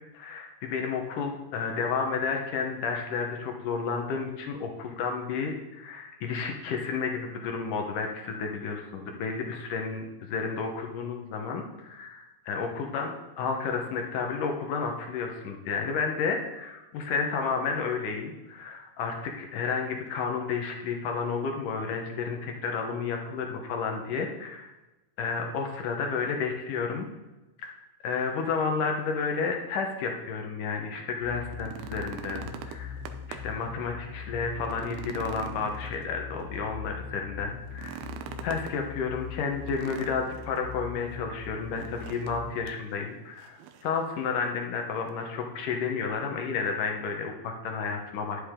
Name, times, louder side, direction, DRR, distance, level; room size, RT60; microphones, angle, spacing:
voice 1, 0.1-24.7 25.2-27.1 27.6-27.7 28.0-33.0 33.3-38.0 38.4-48.4, left 5 dB, 65° left, 2 dB, 2.3 m, -31 dB
sound 1, 31.2-42.7, left 6 dB, 45° right, 3.0 m, -42 dB
sound 2, 31.4-33.6 34.0-34.1 34.6-36.5 37.7-38.8 39.7-40.6 41.7-42.4 42.7-42.8 43.4-44.0 45.1-45.2, right 9 dB, 75° right, 2.6 m, -43 dB
11.0 x 10.0 x 3.7 m, 1.1 s
omnidirectional pair, 4.8 m